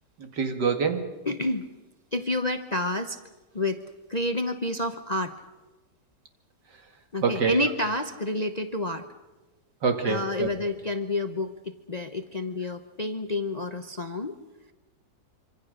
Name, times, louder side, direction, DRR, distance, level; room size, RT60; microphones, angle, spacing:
voice 1, 0.2-1.0 7.2-7.6 9.8-10.5, right 5 dB, 75° right, 6 dB, 2.6 m, -25 dB
voice 2, 1.3-1.7 2.1-3.2 3.5-3.8 4.1-5.3 7.1-9.1 10.0-14.4, left 2 dB, 30° left, 8 dB, 0.8 m, -29 dB
26.0 x 25.5 x 6.5 m, 1.2 s
omnidirectional pair, 1.8 m